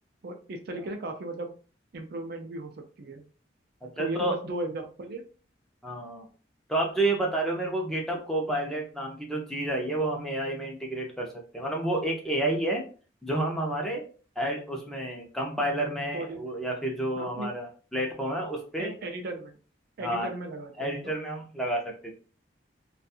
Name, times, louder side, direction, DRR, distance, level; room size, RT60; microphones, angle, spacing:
voice 1, 0.2-1.5 1.9-2.7 3.0-3.2 4.0-5.2 16.1-16.4 17.1-17.5 18.8-19.5 20.0-21.1, right 2 dB, 55° right, 4 dB, 0.4 m, -36 dB
voice 2, 4.0-4.3 5.8-6.3 6.7-11.3 11.5-12.8 13.2-14.0 14.4-18.9 20.0-20.3 20.8-22.1, right 1 dB, ahead, -1 dB, 0.6 m, -30 dB
2.5 x 2.3 x 2.7 m, 0.38 s
head